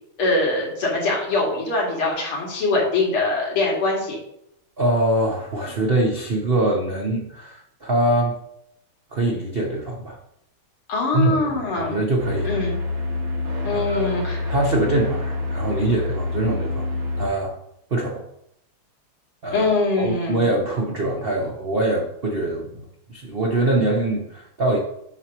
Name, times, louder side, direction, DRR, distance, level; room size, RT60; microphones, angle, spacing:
voice 1, 0.2-4.2 10.9-12.0 12.4-12.8 13.6-14.4 19.5-20.5, left 2 dB, 75° left, -3 dB, 3.0 m, -23 dB
voice 2, 4.8-8.4 9.1-10.2 11.1-12.6 13.7-14.1 14.5-16.9 17.2-17.6 17.9-18.3 19.4-19.7 20.0-24.8, right 1 dB, 90° right, 0 dB, 0.5 m, -23 dB
sound 1, 12.2-17.3, left 3 dB, 60° right, 2.0 m, -27 dB
8.0 x 2.9 x 6.0 m, 0.75 s
omnidirectional pair, 2.4 m